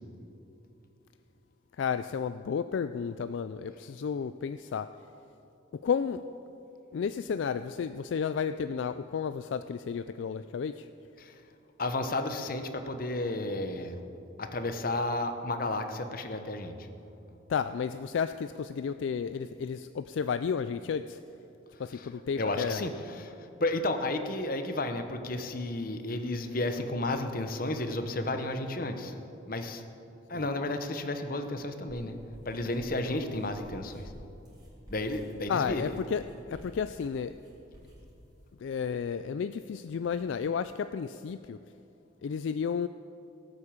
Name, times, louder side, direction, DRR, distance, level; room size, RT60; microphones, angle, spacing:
voice 1, 1.8-4.9 5.8-6.2 6.9-10.9 17.5-21.2 21.8-22.9 30.3-30.4 35.5-37.4 38.6-41.6 42.2-42.9, left 6 dB, 70° left, 12 dB, 0.3 m, -32 dB
voice 2, 11.8-14.0 14.4-16.9 21.9-22.1 22.4-23.3 23.6-29.2 29.5-29.8 30.3-32.1 32.4-34.1 34.9-35.9, left 2 dB, 45° left, 7 dB, 1.0 m, -32 dB
sound 1, 31.9-38.5, equal, 20° right, 3.9 m, -51 dB
17.5 x 8.2 x 7.3 m, 2.8 s
head